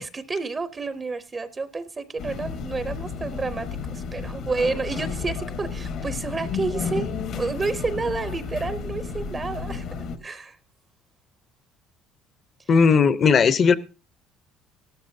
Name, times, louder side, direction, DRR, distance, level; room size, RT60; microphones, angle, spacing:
voice 1, 0.0-7.1 7.3-9.9 10.2-10.6 12.7-12.8, right 3 dB, 20° right, 12 dB, 0.6 m, -30 dB
sound 1, 2.2-10.2, left 5 dB, 60° left, 1.2 m, -32 dB
voice 2, 12.7-13.7, left 5 dB, 35° left, 15 dB, 0.7 m, -17 dB
16.5 x 12.5 x 2.7 m, 0.29 s
cardioid pair, 135°, 0 cm